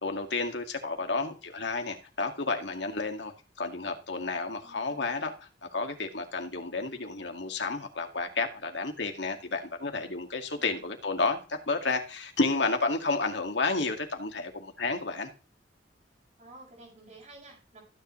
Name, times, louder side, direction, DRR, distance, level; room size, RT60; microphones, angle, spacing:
voice 1, 0.0-5.3 5.6-15.3, left 3 dB, 75° left, 4 dB, 2.1 m, -31 dB
voice 2, 0.9-1.2 4.6-5.1 10.5-10.9 16.4-17.8, right 2 dB, 40° right, -1 dB, 7.0 m, -52 dB
14.5 x 9.9 x 3.2 m, 0.32 s
head